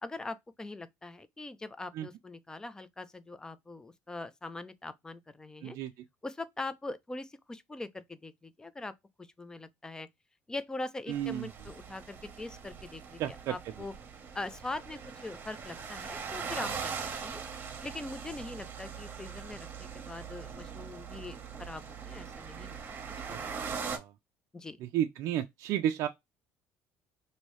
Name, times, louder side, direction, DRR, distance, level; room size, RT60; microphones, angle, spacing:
voice 1, 0.0-5.8 6.2-8.9 9.2-10.1 10.5-13.2 13.5-13.9 14.3-16.9 17.2-17.4 17.8-23.0 23.3-24.0 24.5-24.8, left 2 dB, 10° left, 0.4 m, -42 dB
sound 1, 11.1-24.0, right 6 dB, 35° right, 0.9 m, -41 dB
voice 2, 11.1-11.5 13.2-13.6 23.3-24.1 24.8-26.1, right 11 dB, 65° right, 0.3 m, -33 dB
3.0 x 2.7 x 3.0 m
cardioid pair, 125°, 6 cm